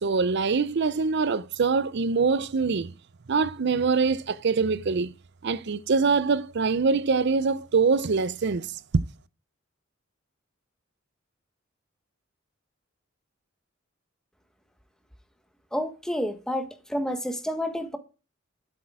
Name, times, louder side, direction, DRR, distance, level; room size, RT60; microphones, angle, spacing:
voice 1, 0.0-2.9 3.3-5.1 5.4-8.8, right 4 dB, 60° right, 0.5 m, -24 dB
voice 2, 15.7-18.0, equal, 5° left, 1.2 m, -29 dB
11.5 x 8.2 x 4.8 m
head